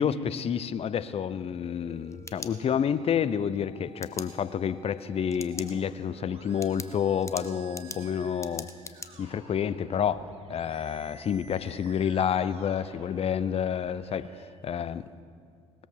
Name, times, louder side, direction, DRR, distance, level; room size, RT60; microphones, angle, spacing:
voice 1, 0.0-8.7 9.2-15.1, left 8 dB, 40° left, 16 dB, 0.7 m, -29 dB
Musical instrument, 1.6-14.6, right 3 dB, 40° right, 2.4 m, -52 dB
sound 1, 1.9-3.1 4.0-4.3 5.3-5.7 6.1-6.2 6.6-9.1, left 3 dB, 20° left, 1.0 m, -41 dB
19.5 x 13.5 x 4.7 m, 2.2 s
hypercardioid pair, 55°, 15 cm